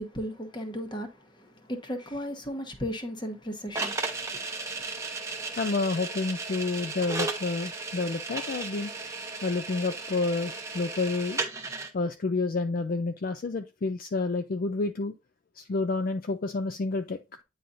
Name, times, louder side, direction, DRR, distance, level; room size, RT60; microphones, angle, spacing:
voice 1, 0.0-5.6, equal, 25° left, 1.0 m, -37 dB
sound 1, 3.7-11.9, right 3 dB, 15° right, 0.8 m, -35 dB
voice 2, 5.6-8.9 9.4-11.4 11.9-15.1 15.5-17.2, left 3 dB, 45° left, 0.4 m, -29 dB
9.3 x 4.1 x 2.6 m
head